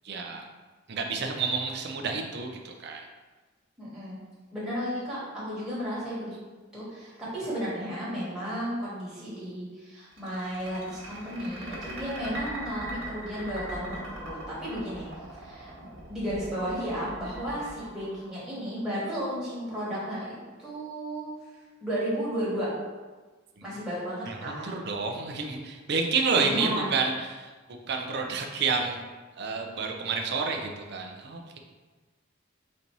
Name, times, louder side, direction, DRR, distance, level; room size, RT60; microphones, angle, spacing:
voice 1, 0.0-0.5 0.9-3.1 23.6-23.7 24.3-27.5 27.9-29.1 29.4-31.6, right 4 dB, 60° right, 3 dB, 0.5 m, -29 dB
voice 2, 3.8-4.2 4.5-6.4 6.7-15.1 15.3-15.7 16.1-21.3 21.8-22.7 23.6-24.8 26.4-26.9, equal, 5° right, -10 dB, 1.2 m, -33 dB
sound 1, 10.1-18.8, right 1 dB, 90° right, 1.3 m, -41 dB
4.2 x 2.7 x 4.5 m, 1.3 s
head